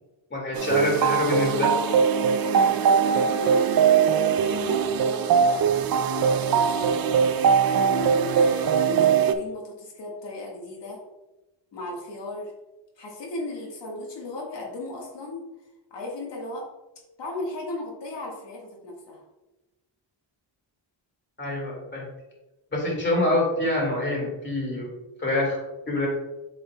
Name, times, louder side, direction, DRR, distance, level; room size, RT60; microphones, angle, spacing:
voice 1, 0.3-1.7 21.4-22.1 22.7-24.9 25.2-25.6 25.9-26.1, left 1 dB, 25° left, -2 dB, 2.1 m, -25 dB
sound 1, 0.5-9.3, right 7 dB, 55° right, 0.5 m, -21 dB
voice 2, 2.3-7.4 7.7-11.0 11.7-12.5 13.0-15.5 15.9-16.7 17.2-19.2, left 2 dB, 65° left, -2 dB, 1.6 m, -36 dB
7.8 x 5.4 x 2.2 m, 1.0 s
wide cardioid pair, 140°, 45 cm